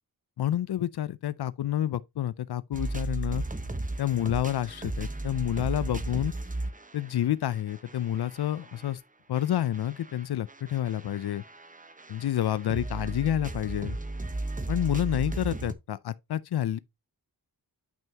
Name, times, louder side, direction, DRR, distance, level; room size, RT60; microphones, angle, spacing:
voice 1, 0.4-3.4 4.0-6.3 6.9-9.0 9.3-11.4 12.1-14.0 14.7-16.8, left 11 dB, 90° left, 0.5 m, -29 dB
sound 1, 2.7-8.9 9.3-15.7, right 2 dB, 20° right, 1.0 m, -36 dB
9.1 x 5.6 x 2.8 m
wide cardioid pair, 105°, 38 cm